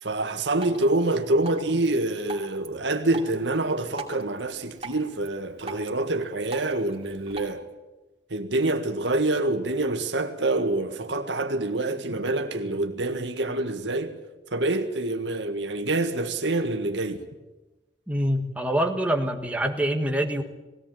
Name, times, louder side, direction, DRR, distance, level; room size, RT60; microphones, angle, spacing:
voice 1, 0.0-7.6 8.3-14.2 14.5-17.2, right 2 dB, 75° right, 1.7 m, -26 dB
Drip, 0.5-7.5, right 2 dB, 35° right, 2.6 m, -43 dB
voice 2, 18.1-20.4, right 1 dB, 10° right, 1.5 m, -25 dB
20.0 x 17.0 x 9.0 m
head